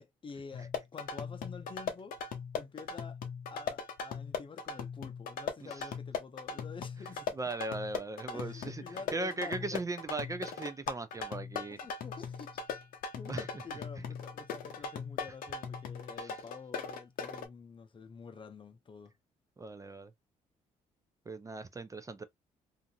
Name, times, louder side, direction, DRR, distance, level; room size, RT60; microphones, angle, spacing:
voice 1, 0.0-2.2 2.5-3.2 3.5-7.3 8.3-9.8 11.7-12.6 13.1-19.1, left 5 dB, 35° left, 0.6 m, -48 dB
sound 1, 0.5-17.5, left 6 dB, 70° left, 0.6 m, -39 dB
voice 2, 7.3-11.8 13.3-13.8 16.2-16.4 19.6-20.1 21.3-22.2, right 2 dB, 20° right, 0.4 m, -39 dB
2.6 x 2.5 x 2.6 m
supercardioid pair, 65°, 15 cm